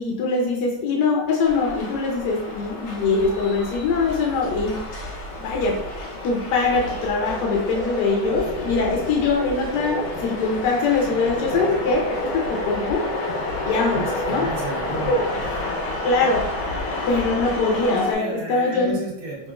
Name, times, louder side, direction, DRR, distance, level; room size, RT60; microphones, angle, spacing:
voice 1, 0.0-4.8 5.4-5.8 6.2-13.0 13.6-14.5 15.0-15.3 16.0-16.5 17.1-19.0, left 3 dB, 75° left, -1 dB, 1.2 m, -22 dB
sound 1, 1.4-18.1, left 2 dB, 55° left, 0.8 m, -30 dB
sound 2, 6.8-15.2, right 1 dB, 75° right, 1.5 m, -34 dB
voice 2, 13.9-15.5 18.2-19.5, right 3 dB, 60° right, -4 dB, 1.2 m, -33 dB
5.8 x 2.4 x 2.3 m, 0.83 s
omnidirectional pair, 1.9 m